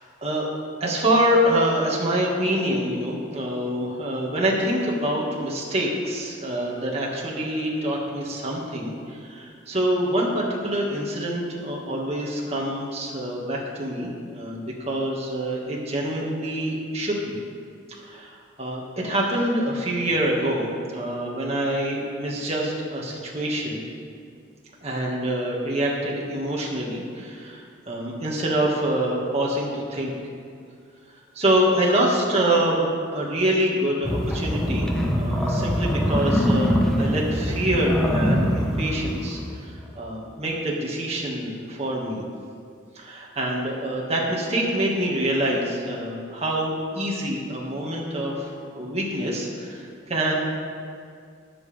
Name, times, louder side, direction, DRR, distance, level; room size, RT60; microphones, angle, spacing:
voice 1, 0.8-17.4 17.9-23.8 24.8-30.1 31.4-32.8 33.1-34.9 35.1-42.2 43.0-50.3, right 1 dB, 30° right, -3 dB, 2.0 m, -26 dB
sound 1, 34.0-39.7, equal, 5° left, 1.0 m, -23 dB
20.5 x 7.6 x 3.6 m, 2.2 s
head